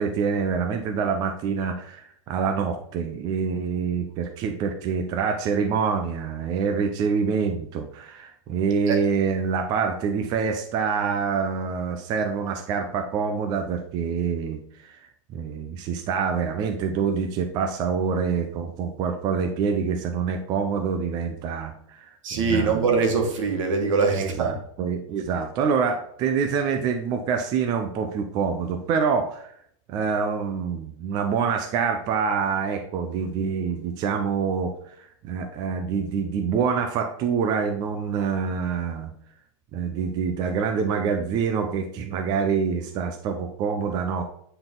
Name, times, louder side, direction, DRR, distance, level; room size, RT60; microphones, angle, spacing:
voice 1, 0.0-22.8 24.1-29.5 29.9-34.7 35.2-39.1 39.7-44.2, right 6 dB, 25° right, 5 dB, 0.5 m, -26 dB
voice 2, 22.2-24.5, right 4 dB, 70° right, 3 dB, 1.7 m, -23 dB
8.9 x 3.9 x 3.8 m, 0.67 s
supercardioid pair, 165°, 17 cm